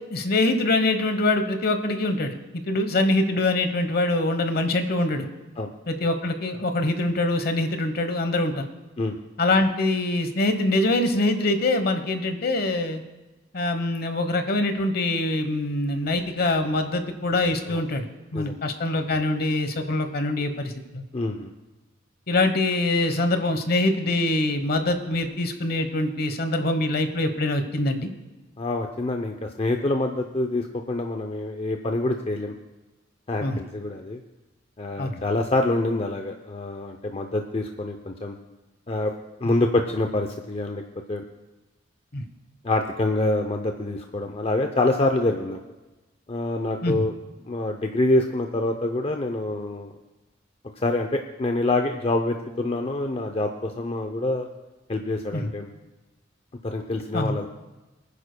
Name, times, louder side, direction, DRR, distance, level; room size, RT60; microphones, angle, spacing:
voice 1, 0.1-5.3 5.9-8.7 9.4-13.0 13.5-18.1 18.3-21.0 22.3-28.1 33.4-33.6 35.0-35.2 42.1-42.2 46.8-47.1 55.3-55.5 57.1-57.4, left 2 dB, 55° left, 8 dB, 1.1 m, -24 dB
voice 2, 21.1-21.5 28.6-32.6 33.3-34.2 34.8-38.4 38.9-39.1 39.4-40.8 41.1-41.2 42.6-45.6 46.3-47.1 47.4-49.9 50.8-54.5 54.9-55.7 56.6-57.5, left 2 dB, 30° left, 5 dB, 0.6 m, -26 dB
24.0 x 9.9 x 2.2 m, 1.1 s
head